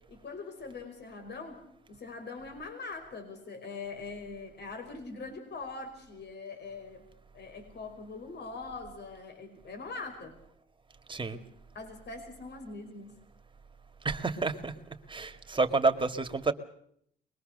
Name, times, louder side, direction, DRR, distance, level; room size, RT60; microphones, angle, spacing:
voice 1, 0.0-1.6 1.9-7.1 7.3-10.3 11.3-11.4 11.7-13.2, left 4 dB, 60° left, 6 dB, 5.4 m, -42 dB
voice 2, 11.1-11.4 14.0-16.5, right 3 dB, 25° right, 7 dB, 2.1 m, -29 dB
24.0 x 21.0 x 6.7 m, 0.68 s
cardioid pair, 90°, 20 cm